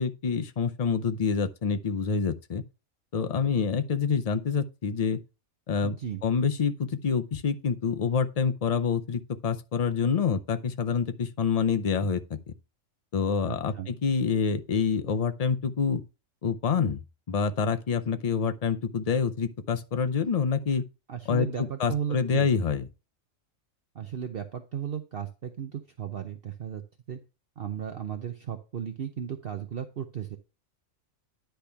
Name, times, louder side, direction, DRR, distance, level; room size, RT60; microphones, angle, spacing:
voice 1, 0.0-2.6 3.1-5.2 5.7-12.5 13.1-16.0 16.4-17.0 17.3-20.8 21.3-22.8, left 6 dB, 50° left, 0.4 m, -27 dB
voice 2, 5.8-6.2 13.4-13.9 21.1-22.5 23.9-26.8 27.1-27.2 27.6-30.4, right 8 dB, 55° right, 0.8 m, -35 dB
10.5 x 3.5 x 5.7 m
omnidirectional pair, 1.4 m